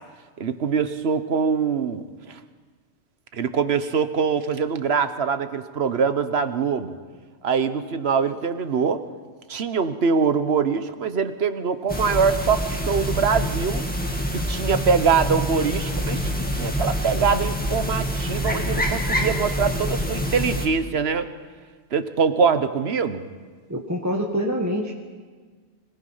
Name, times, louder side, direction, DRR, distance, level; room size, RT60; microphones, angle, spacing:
voice 1, 0.4-2.4 3.3-7.0 7.4-9.0 9.5-13.8 14.3-21.3 21.9-23.2, right 6 dB, 55° right, 11 dB, 1.2 m, -23 dB
sound 1, 11.9-20.7, equal, 5° left, 1.9 m, -26 dB
voice 2, 23.7-24.9, equal, 15° right, -1 dB, 1.3 m, -25 dB
25.0 x 18.5 x 5.7 m, 1.5 s
omnidirectional pair, 1.3 m